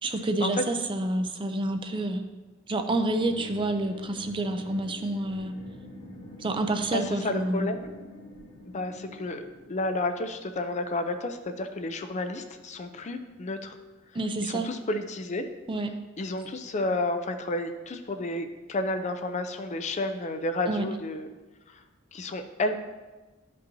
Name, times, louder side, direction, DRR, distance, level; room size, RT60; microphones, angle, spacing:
voice 1, 0.0-2.2 2.7-5.5 6.4-7.7 14.1-14.7 15.7-15.9 20.7-20.9, right 2 dB, 25° right, 6 dB, 0.5 m, -28 dB
sound 1, 3.2-10.7, equal, 60° left, 1.8 m, -46 dB
voice 2, 6.9-7.9 8.7-13.8 14.4-15.4 16.2-21.3 21.7-21.8 22.1-22.7, left 2 dB, 35° left, 7 dB, 0.5 m, -31 dB
11.0 x 5.3 x 2.7 m, 1.2 s
head